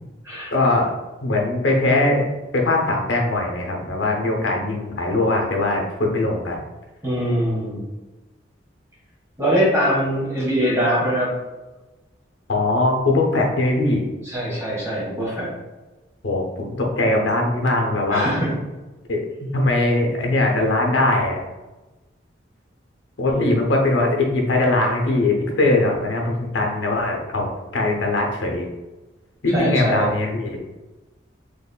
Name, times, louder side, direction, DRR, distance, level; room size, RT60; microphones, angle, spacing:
voice 1, 0.5-0.9 1.2-2.3 2.5-6.6 12.5-14.0 16.2-18.3 19.1-19.2 19.5-21.4 23.2-28.7 29.4-30.6, left 2 dB, 75° left, 1 dB, 0.7 m, -21 dB
voice 2, 7.0-7.9 9.4-11.3 14.2-15.5 18.1-18.5 23.3-23.5 29.5-30.1, equal, 15° right, -7 dB, 1.4 m, -22 dB
4.0 x 3.0 x 2.2 m, 1.1 s
head